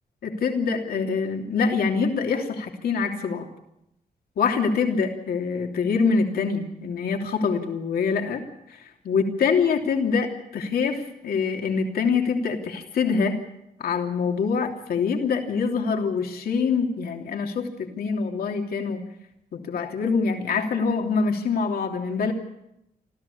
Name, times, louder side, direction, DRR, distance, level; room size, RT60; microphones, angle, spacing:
voice 1, 0.2-3.5 4.4-13.4 13.8-19.0 19.5-22.3, left 5 dB, 75° left, 3 dB, 3.1 m, -25 dB
27.5 x 14.5 x 8.6 m, 0.83 s
cardioid pair, 120°, 16 cm